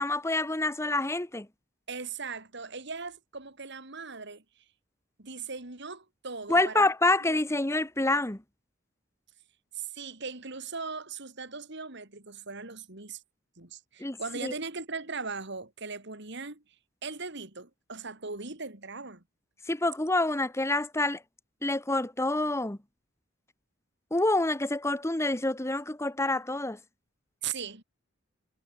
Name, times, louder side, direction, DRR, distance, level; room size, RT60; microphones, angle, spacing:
voice 1, 0.0-1.5 6.5-8.4 14.0-14.2 14.4-14.5 19.7-21.2 21.6-22.8 24.1-26.8, left 2 dB, 15° left, 1.2 m, -27 dB
voice 2, 1.9-4.4 5.2-6.9 7.3-7.4 9.7-13.2 13.6-16.6 17.0-19.2 27.4-27.8, right 4 dB, 65° right, 3.8 m, -39 dB
head